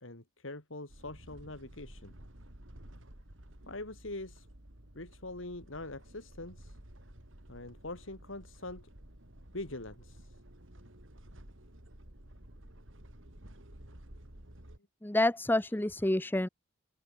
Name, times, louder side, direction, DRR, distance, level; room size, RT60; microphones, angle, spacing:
voice 1, 0.0-2.1 3.7-4.5 5.0-6.7 7.5-8.9 9.5-10.3, left 2 dB, 70° left, 3.5 m, -43 dB
sound 1, 0.9-14.8, right 1 dB, 70° right, 3.9 m, -53 dB
voice 2, 15.0-16.5, left 1 dB, 10° left, 0.7 m, -28 dB
open air
head